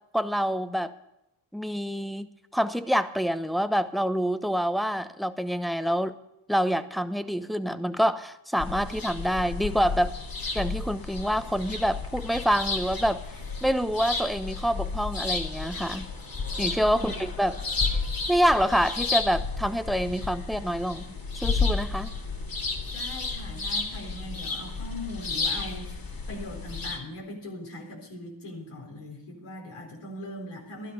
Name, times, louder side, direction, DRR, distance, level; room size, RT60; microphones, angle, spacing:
voice 1, 0.1-0.9 1.5-2.3 2.5-6.1 6.5-10.1 10.5-13.2 13.6-16.1 16.6-17.6 18.3-21.0 21.3-22.1, equal, ahead, 10 dB, 0.9 m, -26 dB
sound 1, 8.6-27.0, left 4 dB, 45° left, 2.1 m, -32 dB
voice 2, 16.9-17.2 22.9-25.9 26.3-30.9, left 1 dB, 85° left, 0 dB, 4.2 m, -40 dB
13.0 x 12.0 x 5.3 m, 0.88 s
cardioid pair, 60°, 49 cm